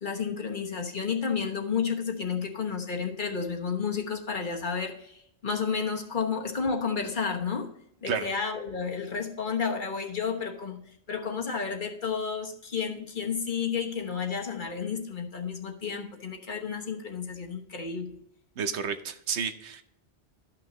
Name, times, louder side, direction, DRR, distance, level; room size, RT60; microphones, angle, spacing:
voice 1, 0.0-7.7 8.0-10.8 11.1-18.2, left 6 dB, 50° left, 2 dB, 1.3 m, -31 dB
voice 2, 18.6-19.8, right 6 dB, 85° right, 9 dB, 1.1 m, -31 dB
12.5 x 5.9 x 3.0 m, 0.74 s
omnidirectional pair, 1.1 m